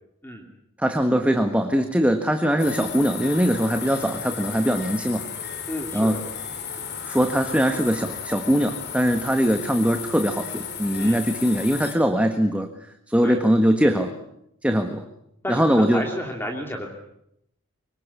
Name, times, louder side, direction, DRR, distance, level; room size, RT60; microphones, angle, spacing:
voice 1, 0.8-5.2 5.9-6.2 7.1-14.1 14.6-15.0 15.5-16.0, equal, 5° right, 6 dB, 1.5 m, -21 dB
sound 1, 2.6-11.9, left 7 dB, 50° left, 4.1 m, -34 dB
voice 2, 5.7-6.2 11.0-11.2 13.2-13.4 15.4-16.9, left 1 dB, 10° left, 2 dB, 2.8 m, -31 dB
25.0 x 24.0 x 8.5 m, 0.78 s
head